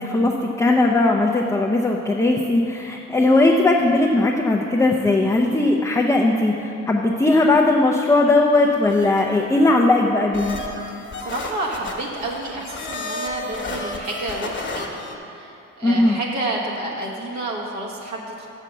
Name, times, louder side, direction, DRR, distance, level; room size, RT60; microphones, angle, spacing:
voice 1, 0.0-10.6 15.8-16.2, left 2 dB, 10° left, -1 dB, 0.6 m, -18 dB
sound 1, 8.5-9.5 10.3-15.1, left 2 dB, 40° left, 1.2 m, -32 dB
voice 2, 11.2-15.0 15.3-18.5, right 2 dB, 65° right, -3 dB, 1.4 m, -30 dB
6.6 x 6.1 x 7.0 m, 2.8 s
cardioid pair, 90°, 30 cm